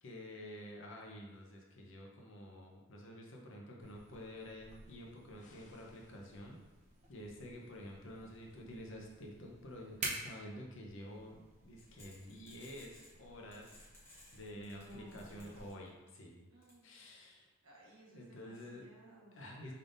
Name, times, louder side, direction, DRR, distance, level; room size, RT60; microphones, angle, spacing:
voice 1, 0.0-6.6 7.1-13.7 14.3-16.5 16.8-17.5 18.1-18.9 19.3-19.7, equal, 55° left, 0 dB, 0.8 m, -50 dB
sound 1, 3.8-15.7, right 2 dB, 30° right, 0.7 m, -51 dB
sound 2, 5.4-7.0, left 3 dB, 35° left, 0.4 m, -68 dB
sound 3, 11.8-13.1 13.5-16.1 16.6-16.7, left 1 dB, 10° left, 1.2 m, -60 dB
voice 2, 14.6-15.7 16.5-17.0 17.6-19.4, equal, 65° right, -4 dB, 1.2 m, -58 dB
5.4 x 3.6 x 2.6 m, 1.1 s
head